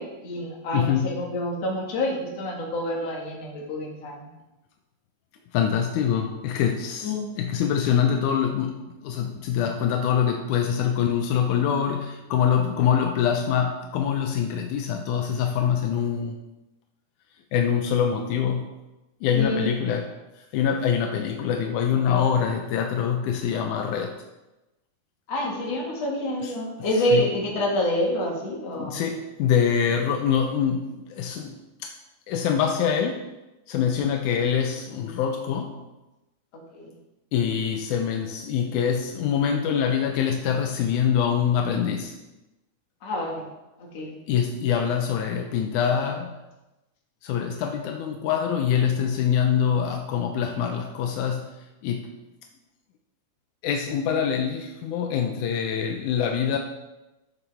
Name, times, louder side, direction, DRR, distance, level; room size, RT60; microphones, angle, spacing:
voice 1, 0.0-4.3 7.0-7.3 19.3-19.7 25.3-29.0 36.7-36.9 43.0-43.5 43.8-44.2, left 1 dB, 60° left, -1 dB, 2.9 m, -27 dB
voice 2, 0.7-1.2 5.5-7.1 7.4-16.4 17.5-18.7 19.2-20.1 20.5-24.1 26.4-26.5 27.0-27.3 28.8-31.9 32.3-33.2 33.7-35.8 37.3-42.1 44.3-46.4 47.2-51.5 51.8-52.1 53.6-56.6, left 8 dB, 85° left, 4 dB, 2.2 m, -24 dB
13.5 x 7.1 x 3.5 m, 1.0 s
omnidirectional pair, 3.5 m